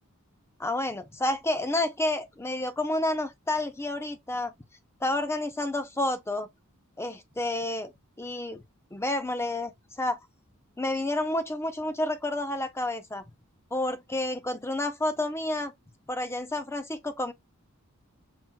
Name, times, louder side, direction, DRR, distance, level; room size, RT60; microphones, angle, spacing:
voice 1, 0.6-4.5 5.0-6.5 7.0-7.9 8.2-8.6 8.9-9.7 10.0-10.2 10.8-13.2 13.7-15.7 16.1-17.3, left 1 dB, 10° left, 0.5 m, -30 dB
5.7 x 2.4 x 2.3 m
head